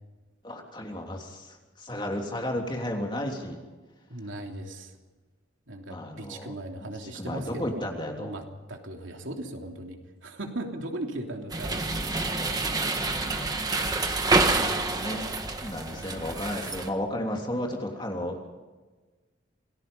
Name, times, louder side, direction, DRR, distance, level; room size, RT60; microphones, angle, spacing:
voice 1, 0.4-3.6 5.9-6.5 7.0-8.4 13.2-13.5 13.8-14.0 14.5-15.3 15.6-18.5, left 1 dB, 25° left, 1 dB, 3.2 m, -33 dB
voice 2, 4.1-4.9 5.7-7.8 8.2-8.4 8.7-12.5 14.9-15.1 15.9-16.2 18.0-18.3, right 1 dB, 80° right, 2 dB, 3.2 m, -38 dB
sound 1, 11.5-16.9, right 3 dB, 20° right, 1.6 m, -27 dB
27.5 x 19.0 x 5.5 m, 1.3 s
head